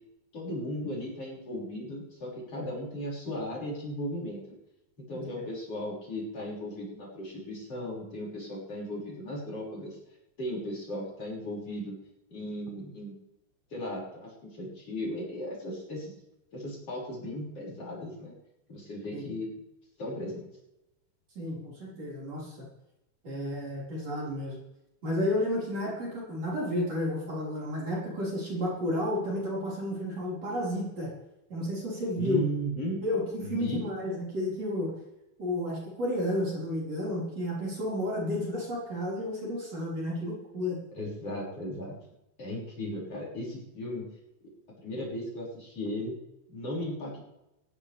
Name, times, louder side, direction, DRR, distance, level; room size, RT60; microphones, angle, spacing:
voice 1, 0.3-4.6 5.1-10.0 10.4-11.9 12.3-13.1 13.7-16.1 16.5-18.3 18.7-19.5 20.0-20.5 32.2-33.0 33.4-33.8 40.9-41.9 42.4-44.1 44.8-46.1 46.5-47.2, equal, 35° left, -5 dB, 6.8 m, -36 dB
voice 2, 21.4-22.5 23.2-24.6 25.0-31.1 31.5-32.4 33.0-34.9 35.4-40.8, left 1 dB, 40° right, -5 dB, 6.1 m, -32 dB
19.5 x 16.5 x 3.5 m, 0.90 s
omnidirectional pair, 4.7 m